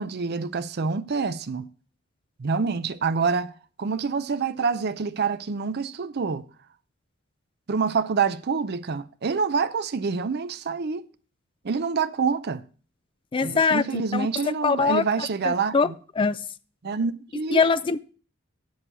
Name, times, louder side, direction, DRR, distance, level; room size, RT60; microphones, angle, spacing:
voice 1, 0.0-1.7 2.4-3.5 3.8-6.4 7.7-11.1 11.6-12.6 13.4-15.9 16.8-17.6, right 5 dB, 50° right, 0.5 m, -26 dB
voice 2, 13.3-14.3 14.6-16.4 17.5-18.0, left 5 dB, 25° left, 0.3 m, -23 dB
7.5 x 6.4 x 6.7 m
head